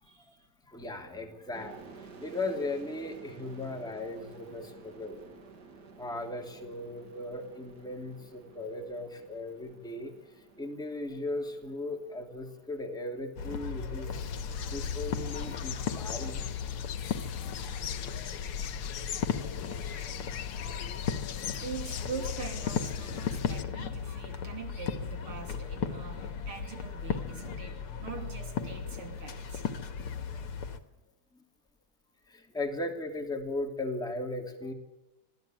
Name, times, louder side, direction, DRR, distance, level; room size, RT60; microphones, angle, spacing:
voice 1, 0.0-0.4 21.6-29.6, right 5 dB, 70° right, 4 dB, 3.7 m, -43 dB
voice 2, 0.6-5.3 6.0-10.1 10.6-14.4 14.7-16.4 32.3-34.7, left 2 dB, ahead, 2 dB, 2.7 m, -37 dB
sound 1, 1.5-15.0, right 4 dB, 50° right, 2.7 m, -53 dB
sound 2, 13.4-30.8, left 6 dB, 80° left, 2.4 m, -36 dB
sound 3, 14.1-23.6, left 8 dB, 65° left, 1.7 m, -40 dB
26.0 x 17.0 x 9.3 m, 0.99 s
omnidirectional pair, 2.4 m